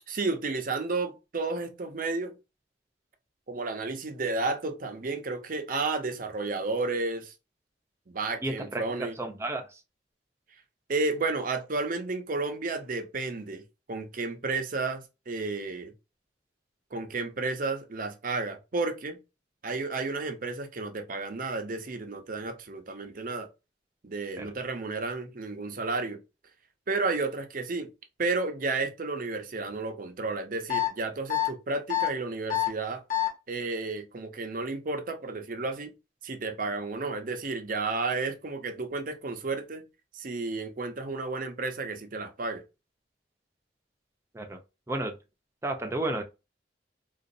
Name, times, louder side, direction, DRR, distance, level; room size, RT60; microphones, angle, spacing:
voice 1, 0.1-2.3 3.5-7.3 8.1-9.1 10.9-13.6 13.9-15.9 16.9-19.2 19.6-23.5 24.0-26.2 26.9-27.9 28.2-33.0 33.5-35.9 36.2-39.8 40.1-42.6, right 3 dB, 50° right, 0.7 m, -32 dB
voice 2, 8.4-9.8 24.4-24.5 44.3-44.6 44.9-45.2 45.6-46.2, right 2 dB, 15° right, 0.6 m, -32 dB
sound 1, 30.7-30.9 31.3-31.5 31.9-32.1 32.5-32.7 33.1-33.3, left 12 dB, 45° left, 1.1 m, -26 dB
3.9 x 2.4 x 2.6 m
head